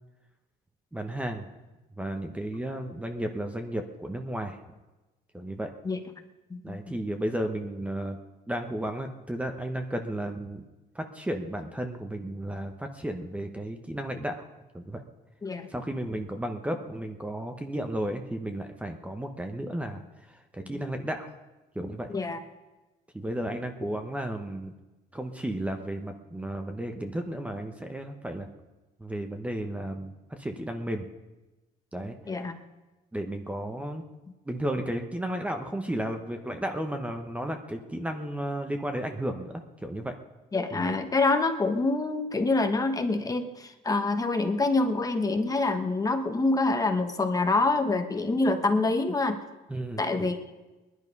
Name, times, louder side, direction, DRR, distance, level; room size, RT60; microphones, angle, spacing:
voice 1, 0.9-1.5 2.0-4.6 5.3-5.7 6.6-8.2 8.5-10.6 10.9-14.5 14.7-15.0 15.7-20.0 20.3-21.3 21.7-22.1 23.1-24.7 25.1-28.5 29.0-31.1 31.9-32.1 33.1-34.0 34.5-40.1 40.7-41.0 49.7-50.3, right 1 dB, 10° right, 5 dB, 1.0 m, -33 dB
voice 2, 6.5-7.0 15.4-15.7 22.1-22.4 32.3-32.6 40.5-49.4 50.0-50.4, left 3 dB, 20° left, 6 dB, 1.2 m, -26 dB
19.5 x 11.0 x 5.4 m, 1.1 s
cardioid pair, 110°, 17 cm